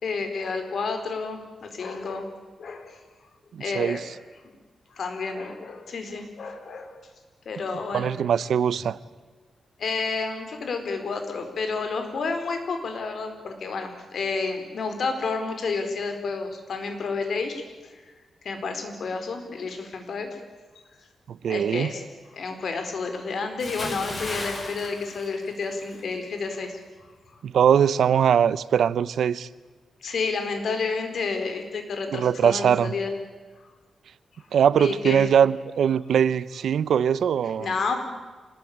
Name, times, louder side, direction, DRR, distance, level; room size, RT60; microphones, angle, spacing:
voice 1, 0.0-2.3 2.6-3.0 3.6-4.0 4.9-6.9 7.5-8.1 9.8-17.9 18.4-20.4 21.5-22.0 22.3-26.8 30.0-33.1 34.7-35.2 37.6-38.0, left 4 dB, 60° left, 6 dB, 4.4 m, -30 dB
voice 2, 3.5-4.0 7.9-9.0 21.3-21.9 27.4-29.5 32.1-32.9 34.5-37.7, right 8 dB, 80° right, 18 dB, 0.8 m, -21 dB
Bathtub (filling or washing) / Splash splatter, 23.6-26.0 26.3-26.6, left 2 dB, 40° left, 5.2 m, -35 dB
26.5 x 20.0 x 8.8 m, 1.4 s
wide cardioid pair, 125°, 0 cm